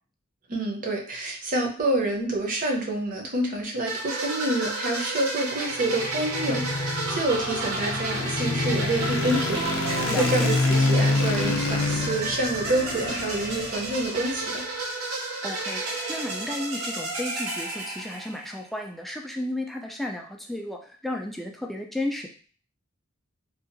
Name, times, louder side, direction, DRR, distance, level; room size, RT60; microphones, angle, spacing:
voice 1, 0.5-14.6, right 1 dB, 40° right, 0 dB, 0.6 m, -28 dB
sound 1, 3.9-18.6, right 2 dB, 75° right, 0.8 m, -32 dB
sound 2, 5.7-14.1, left 3 dB, 85° left, 0.5 m, -27 dB
voice 2, 10.1-10.5 15.4-22.3, left 1 dB, ahead, 1 dB, 0.3 m, -33 dB
2.7 x 2.4 x 2.5 m, 0.43 s
head